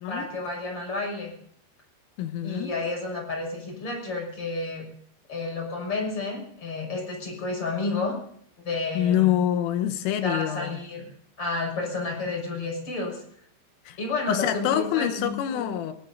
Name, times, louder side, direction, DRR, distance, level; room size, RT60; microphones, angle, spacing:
voice 1, 0.1-1.3 2.4-4.9 5.3-8.2 8.6-9.3 10.2-11.1 11.4-13.2 14.0-15.8, left 3 dB, 25° left, 0 dB, 7.3 m, -31 dB
voice 2, 2.2-2.7 9.0-10.8 13.9-14.0 14.3-15.9, left 11 dB, 85° left, 9 dB, 3.7 m, -26 dB
25.0 x 19.0 x 2.7 m, 0.66 s
omnidirectional pair, 5.7 m